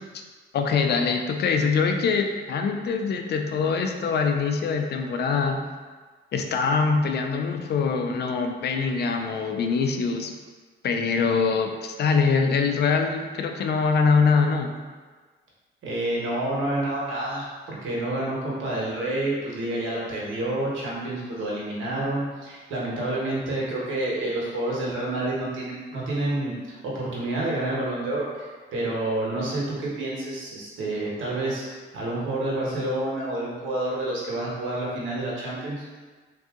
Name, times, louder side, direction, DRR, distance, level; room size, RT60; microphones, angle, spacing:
voice 1, 0.5-5.6 6.3-10.3 10.8-14.7, left 5 dB, 55° left, 4 dB, 0.5 m, -23 dB
voice 2, 15.8-35.8, right 1 dB, 75° right, -5 dB, 1.3 m, -29 dB
3.6 x 2.8 x 3.6 m, 1.4 s
cardioid pair, 90°, 20 cm